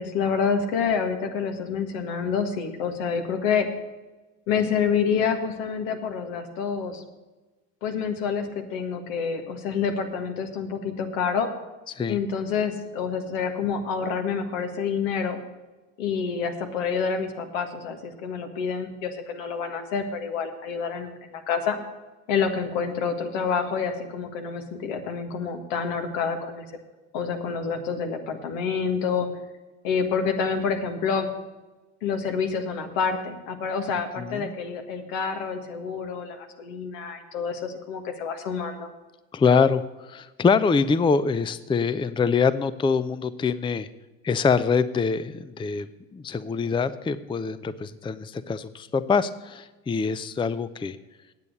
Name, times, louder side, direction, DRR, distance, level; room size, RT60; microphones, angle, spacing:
voice 1, 0.0-3.7 4.5-7.0 7.8-11.5 12.1-15.4 16.0-21.8 22.3-26.6 27.1-29.3 29.8-31.3 32.0-38.9, left 6 dB, 75° left, 5 dB, 1.7 m, -28 dB
voice 2, 34.2-34.5 39.3-43.9 44.2-51.0, left 5 dB, 15° left, 14 dB, 0.5 m, -24 dB
9.2 x 8.3 x 6.7 m, 1.2 s
hypercardioid pair, 70°, 39 cm